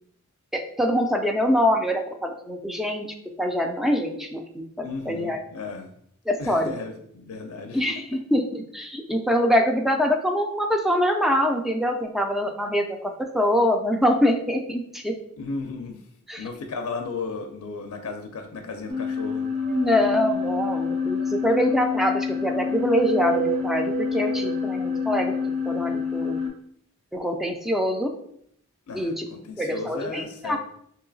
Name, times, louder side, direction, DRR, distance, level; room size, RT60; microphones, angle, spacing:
voice 1, 0.5-5.4 6.3-6.7 7.7-15.2 16.3-16.4 19.7-25.3 25.7-26.4 27.1-28.1 28.9-29.3 29.6-30.6, equal, ahead, 3 dB, 0.4 m, -24 dB
voice 2, 4.8-5.9 6.4-7.8 15.4-16.0 16.4-19.5 28.9-30.6, left 4 dB, 85° left, 5 dB, 0.4 m, -35 dB
sound 1, 18.9-26.5, left 4 dB, 65° right, 1.4 m, -27 dB
3.0 x 2.8 x 3.9 m, 0.69 s
head